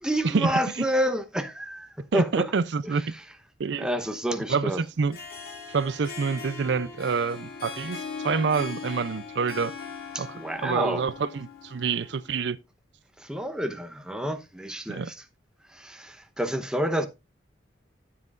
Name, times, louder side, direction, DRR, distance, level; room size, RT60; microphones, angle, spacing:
voice 1, 0.0-2.5 2.8-3.2 3.8-4.8 10.1-11.1 13.2-15.2 15.6-17.1, equal, 5° right, 0.9 m, -29 dB
voice 2, 2.1-3.0 3.6-3.9 4.5-5.2 5.7-9.7 10.2-10.3 10.6-12.6 14.9-15.1, right 5 dB, 70° right, 0.5 m, -27 dB
Harp, 4.9-12.3, left 5 dB, 50° left, 2.3 m, -39 dB
13.0 x 7.6 x 2.4 m
head